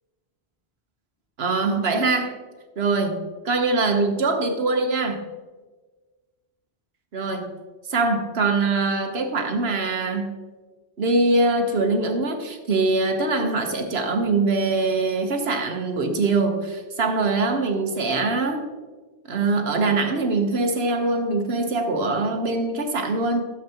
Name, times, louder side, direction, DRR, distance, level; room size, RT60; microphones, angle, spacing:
voice 1, 1.4-2.3 2.8-5.2 7.1-7.6 7.9-10.4 11.0-18.6 19.3-23.5, right 3 dB, 70° right, 5 dB, 1.4 m, -23 dB
12.5 x 7.4 x 2.9 m, 1.3 s
omnidirectional pair, 1.1 m